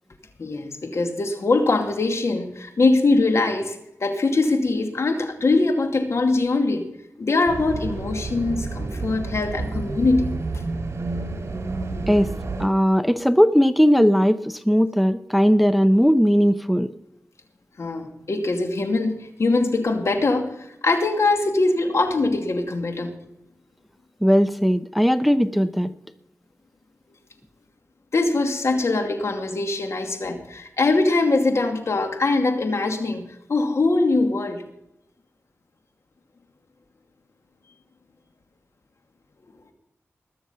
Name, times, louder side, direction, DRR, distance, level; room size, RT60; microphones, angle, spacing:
voice 1, 0.4-6.9 7.2-10.3 17.8-23.2 28.1-33.2 33.5-34.6, left 3 dB, 65° left, 6 dB, 2.4 m, -22 dB
sound 1, 7.5-12.7, right 3 dB, 60° right, 2.9 m, -30 dB
voice 2, 12.6-16.9 24.2-25.9, equal, ahead, 13 dB, 0.7 m, -18 dB
20.5 x 7.0 x 5.6 m, 0.81 s
cardioid pair, 55°, 5 cm